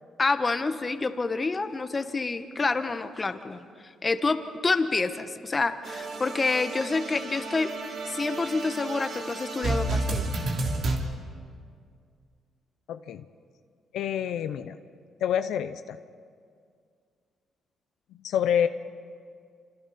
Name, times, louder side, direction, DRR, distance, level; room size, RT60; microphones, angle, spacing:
voice 1, 0.2-7.7 8.0-10.3, left 3 dB, 30° left, 9 dB, 1.3 m, -28 dB
sound 1, 5.8-11.0, right 2 dB, 60° right, 3.4 m, -31 dB
voice 2, 12.9-13.3 13.9-14.8 15.2-16.0 18.1-18.7, left 9 dB, 80° left, 10 dB, 0.7 m, -27 dB
28.0 x 26.5 x 4.3 m, 2.2 s
cardioid pair, 90°, 0 cm